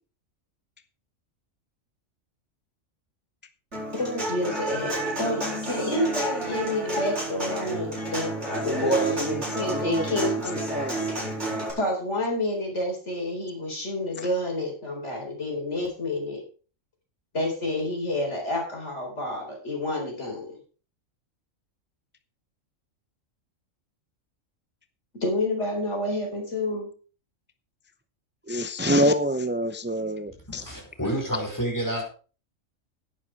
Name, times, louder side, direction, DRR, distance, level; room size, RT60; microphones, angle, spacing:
Human voice / Acoustic guitar, 3.7-11.7, right 1 dB, 55° right, 6.6 m, -30 dB
voice 1, 3.9-8.3 8.6-10.6 11.8-16.4 17.3-20.5 25.2-26.9, left 1 dB, 60° left, 4.6 m, -29 dB
voice 2, 8.5-10.3 10.7-11.1 14.2-14.3 28.5-30.6, equal, 20° right, 0.3 m, -27 dB
voice 3, 30.5-32.0, right 1 dB, 15° left, 4.8 m, -29 dB
11.0 x 10.0 x 4.7 m
omnidirectional pair, 1.4 m